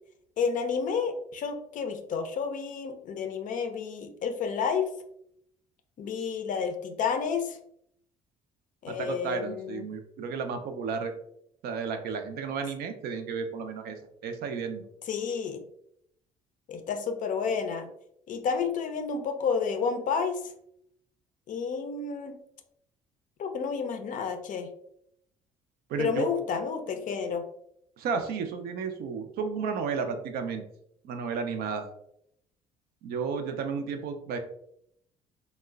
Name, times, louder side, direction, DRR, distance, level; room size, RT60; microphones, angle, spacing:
voice 1, 0.4-4.8 6.0-7.6 8.8-9.8 15.1-15.6 16.7-17.9 18.3-20.4 21.5-22.4 23.4-24.7 26.0-27.4, left 6 dB, 50° left, 6 dB, 0.4 m, -30 dB
voice 2, 8.9-11.1 11.6-14.8 25.9-26.3 28.0-30.6 31.0-31.8 33.0-34.4, right 5 dB, 60° right, 6 dB, 0.4 m, -33 dB
2.9 x 2.0 x 2.3 m, 0.73 s
hypercardioid pair, 55°, 18 cm